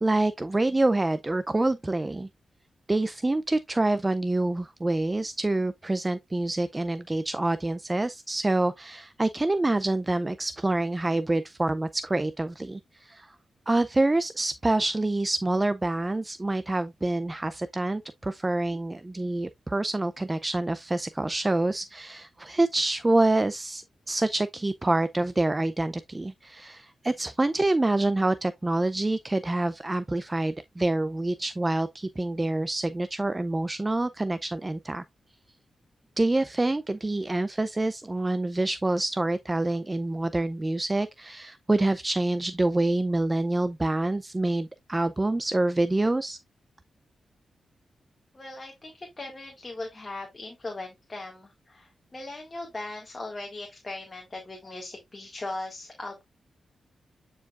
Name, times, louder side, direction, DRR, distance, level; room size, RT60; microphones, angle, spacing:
voice 1, 0.0-2.3 2.9-13.3 13.7-35.0 36.2-46.4, right 2 dB, 20° right, 0.4 m, -26 dB
voice 2, 48.3-56.2, left 2 dB, 25° left, 1.8 m, -39 dB
9.4 x 4.6 x 2.4 m
wide cardioid pair, 105°, 0 cm